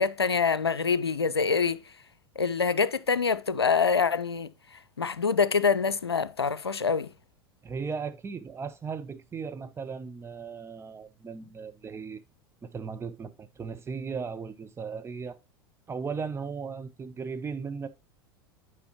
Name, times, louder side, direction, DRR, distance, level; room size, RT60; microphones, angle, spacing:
voice 1, 0.0-1.8 2.4-4.5 5.0-7.1, left 5 dB, 90° left, 0.5 m, -25 dB
voice 2, 7.6-12.2 12.6-15.4 15.9-17.9, right 5 dB, 20° right, 0.9 m, -36 dB
9.4 x 4.9 x 2.9 m
figure-of-eight pair, 85°, 13 cm